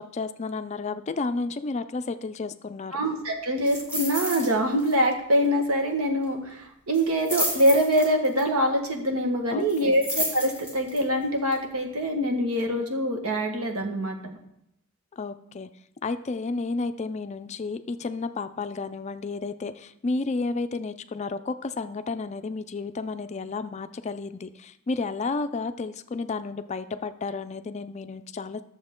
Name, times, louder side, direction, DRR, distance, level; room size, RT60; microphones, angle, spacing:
voice 1, 0.0-3.0 9.5-10.0 15.1-15.7 16.0-28.6, left 3 dB, 30° left, 11 dB, 0.4 m, -32 dB
voice 2, 2.9-14.4, equal, 90° right, 3 dB, 1.4 m, -24 dB
sound 1, 3.6-4.5 4.8-5.1 5.3-5.4 6.9-8.4 9.7-11.0 11.5-11.6, left 1 dB, 10° right, 2.9 m, -31 dB
11.5 x 6.9 x 3.7 m, 0.78 s
head